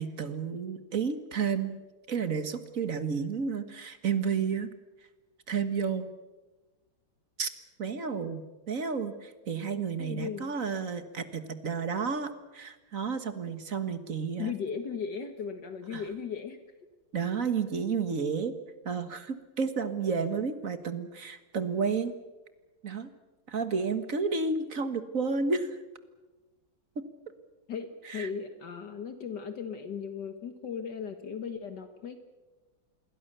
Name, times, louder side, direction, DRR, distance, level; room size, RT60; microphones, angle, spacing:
voice 1, 0.0-1.8 2.1-4.7 5.5-6.1 7.4-7.5 7.8-14.5 15.9-16.0 17.1-18.5 18.8-22.1 22.8-23.1 23.5-25.7 26.9-27.0 28.1-28.3, right 5 dB, 45° right, 10 dB, 1.8 m, -31 dB
voice 2, 10.0-10.5 14.4-16.6 27.7-32.2, left 6 dB, 65° left, 8 dB, 2.0 m, -37 dB
27.0 x 21.5 x 6.8 m, 1.2 s
omnidirectional pair, 2.1 m